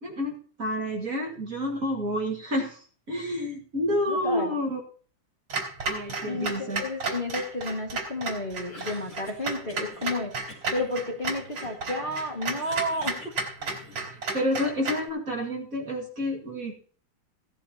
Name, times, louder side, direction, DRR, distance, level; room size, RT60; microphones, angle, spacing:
voice 1, 0.0-4.8 5.9-6.8 14.3-16.7, left 1 dB, 40° right, 0 dB, 2.3 m, -29 dB
voice 2, 4.1-4.6 6.2-10.3 10.7-13.3, left 1 dB, 25° left, -1 dB, 1.9 m, -31 dB
Clock, 5.5-15.1, right 3 dB, 80° right, 3.9 m, -33 dB
Cough, 8.5-10.1 10.5-12.0 12.3-14.2, left 2 dB, 55° left, 4.1 m, -49 dB
17.0 x 10.5 x 2.9 m, 0.43 s
omnidirectional pair, 2.4 m